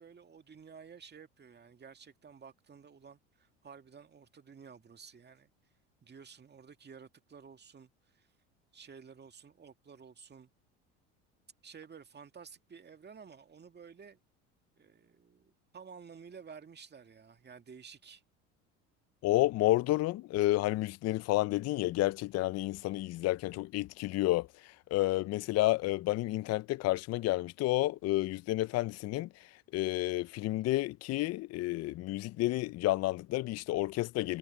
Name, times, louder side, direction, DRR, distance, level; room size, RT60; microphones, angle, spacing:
voice 1, 0.0-5.5 6.0-8.3 8.7-10.5 11.6-14.2 14.8-18.2, right 6 dB, 30° right, 2.1 m, -53 dB
voice 2, 19.2-24.5 24.9-29.3 29.7-34.4, left 17 dB, 45° left, 0.6 m, -30 dB
hypercardioid pair, 80°, 36 cm